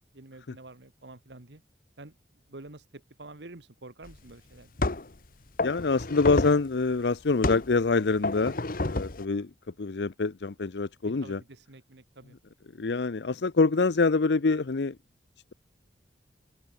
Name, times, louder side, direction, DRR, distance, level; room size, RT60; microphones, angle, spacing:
voice 1, 0.1-1.6 2.0-2.1 2.5-4.7 11.0-12.4, right 2 dB, 75° right, 1.6 m, -48 dB
sound 1, 4.1-4.2 4.8-5.2 5.6-6.7 7.4-7.7 8.2-9.2, left 2 dB, 50° left, 1.2 m, -29 dB
voice 2, 5.6-8.5 8.8-9.5 9.8-11.4 12.8-14.9, left 3 dB, 75° left, 0.7 m, -25 dB
open air
head